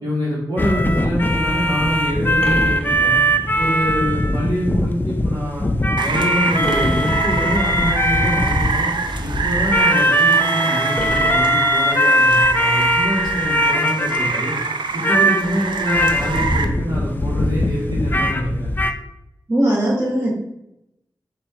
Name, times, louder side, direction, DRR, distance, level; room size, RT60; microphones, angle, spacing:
voice 1, 0.0-3.2 3.6-5.7 6.0-8.9 9.2-14.5 15.1-18.7, equal, 65° right, -8 dB, 1.5 m, -25 dB
sound 1, 0.6-14.6 15.0-18.9, equal, 25° left, 0.4 m, -20 dB
sound 2, 2.4-3.8 6.6-7.8 10.9-12.3, equal, 10° left, 1.2 m, -29 dB
Rain, 6.0-16.6, right 4 dB, 85° right, 0.4 m, -25 dB
voice 2, 19.5-20.3, right 1 dB, 35° right, -6 dB, 1.3 m, -19 dB
4.1 x 2.6 x 4.6 m, 0.86 s
cardioid pair, 50°, 8 cm